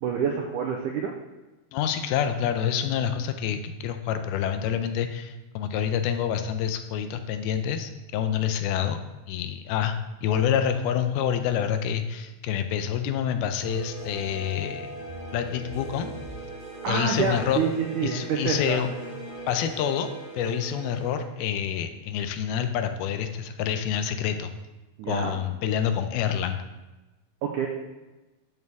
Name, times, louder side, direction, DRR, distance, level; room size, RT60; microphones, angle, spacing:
voice 1, 0.0-1.1 16.8-18.8 25.0-25.4 27.4-27.7, right 6 dB, 90° right, 1 dB, 1.8 m, -27 dB
voice 2, 1.7-9.0 9.3-14.9 15.3-16.1 16.9-17.6 18.0-18.9 19.5-24.5 25.1-26.6, left 9 dB, 80° left, 8 dB, 2.5 m, -27 dB
sound 1, 13.6-21.3, right 2 dB, 20° left, 1.3 m, -39 dB
10.5 x 6.6 x 3.5 m, 1.1 s
omnidirectional pair, 4.5 m